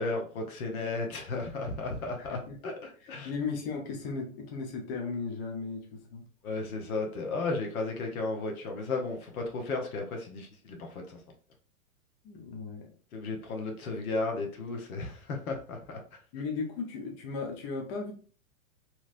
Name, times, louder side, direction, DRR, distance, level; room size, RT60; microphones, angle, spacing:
voice 1, 0.0-3.3 6.4-11.2 13.1-16.2, left 3 dB, 75° left, 3 dB, 1.0 m, -34 dB
voice 2, 2.2-2.6 3.2-6.2 12.2-12.9 16.3-18.1, left 4 dB, 40° left, 1 dB, 0.8 m, -36 dB
3.0 x 3.0 x 2.5 m, 0.42 s
hypercardioid pair, 130°, 43 cm